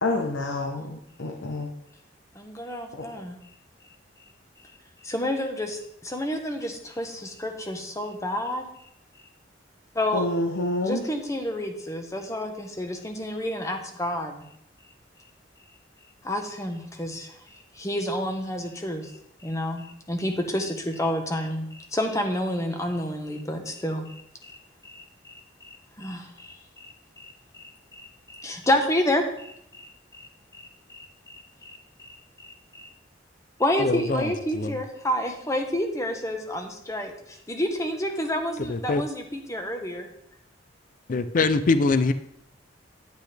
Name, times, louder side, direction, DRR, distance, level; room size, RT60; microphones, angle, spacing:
voice 1, 0.0-1.7 2.9-3.0 10.1-11.0, left 2 dB, 85° left, 3 dB, 0.9 m, -28 dB
voice 2, 2.3-3.4 5.0-8.6 9.9-10.3 10.8-14.4 16.2-17.3 17.8-19.1 19.4-24.6 24.8-25.7 26.0-30.2 30.5-32.9 33.6-40.1, left 1 dB, 15° left, 4 dB, 1.0 m, -30 dB
voice 3, 33.8-34.8 38.6-39.0 41.1-42.1, left 3 dB, 45° left, 11 dB, 0.4 m, -24 dB
10.0 x 8.2 x 3.4 m, 0.76 s
head